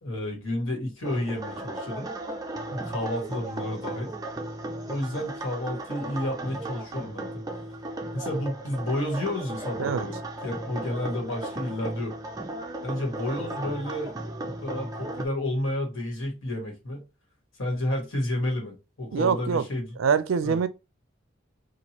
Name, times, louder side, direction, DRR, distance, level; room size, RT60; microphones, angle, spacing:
voice 1, 0.0-2.1 2.7-4.1 4.8-7.4 8.1-12.2 12.8-14.1 14.6-17.0 17.6-19.9 20.4-20.6, left 1 dB, 75° left, 1.5 m, -31 dB
sound 1, 1.0-15.3, right 2 dB, 20° right, 0.4 m, -36 dB
voice 2, 19.1-19.7 20.0-20.7, right 6 dB, 85° right, 0.4 m, -24 dB
2.9 x 2.5 x 4.3 m
head